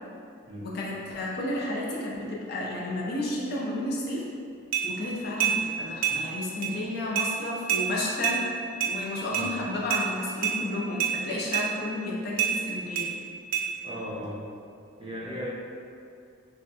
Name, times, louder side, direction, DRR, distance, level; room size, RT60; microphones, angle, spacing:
voice 1, 0.6-4.2 4.8-8.4 8.9-13.1, left 1 dB, 50° left, -4 dB, 0.4 m, -32 dB
sound 1, 4.7-4.9 5.4-5.6 6.0-6.2 6.6-6.7 7.1-7.3 7.7-7.8 8.2-8.4 8.8-8.9 9.3-9.5 9.9-10.0 10.4-10.6 11.0-11.1 11.5-11.7 12.4-12.5 12.9-13.1 13.5-13.6, right 9 dB, 80° right, 0.4 m, -26 dB
voice 2, 13.8-14.4 15.0-15.5, equal, 25° right, -8 dB, 0.7 m, -36 dB
3.4 x 2.3 x 2.6 m, 2.4 s
head